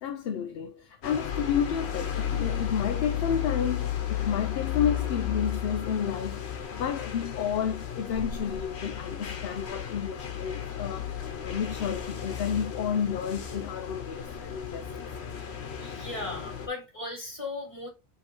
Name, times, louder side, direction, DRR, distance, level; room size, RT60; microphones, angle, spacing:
voice 1, 0.0-15.1, left 8 dB, 70° left, 0.8 m, -31 dB
sound 1, 1.0-16.7, left 9 dB, 85° left, 1.1 m, -34 dB
voice 2, 15.8-17.9, left 2 dB, 30° left, 2.3 m, -37 dB
5.5 x 2.9 x 3.0 m
omnidirectional pair, 1.1 m